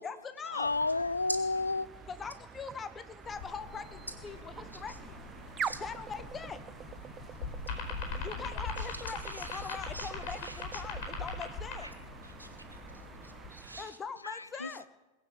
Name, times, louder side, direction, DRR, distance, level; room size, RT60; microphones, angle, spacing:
voice 1, 0.0-0.7 2.1-5.2 5.8-6.6 8.2-11.9 13.8-14.9, left 5 dB, 20° left, 1.2 m, -42 dB
voice 2, 0.5-1.9 14.2-14.9, left 3 dB, 80° left, 0.5 m, -31 dB
sound 1, 0.6-14.0, right 7 dB, 20° right, 0.6 m, -46 dB
sound 2, 3.2-13.5, left 4 dB, 45° left, 4.5 m, -42 dB
voice 3, 8.8-10.8 11.8-11.9 12.2-14.0, right 1 dB, 85° right, 1.8 m, -45 dB
21.0 x 9.1 x 7.1 m
figure-of-eight pair, 90°, 0 cm